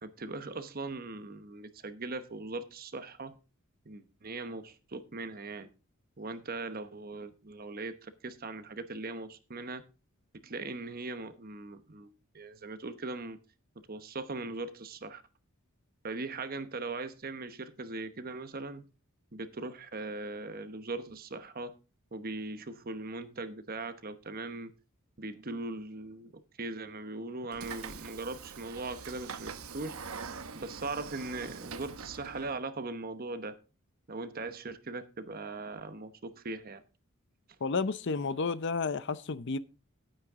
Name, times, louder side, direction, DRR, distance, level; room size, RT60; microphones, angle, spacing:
voice 1, 0.0-3.4 3.8-5.7 6.2-9.8 10.4-13.4 13.9-15.2 16.0-18.9 19.3-21.7 22.1-24.7 25.2-30.0 30.5-33.6 34.1-36.8, right 3 dB, 45° right, 1.0 m, -40 dB
Train / Sliding door, 27.5-32.6, right 5 dB, 85° right, 1.0 m, -44 dB
voice 2, 37.6-39.6, left 4 dB, 55° left, 0.7 m, -31 dB
12.0 x 9.0 x 3.6 m
head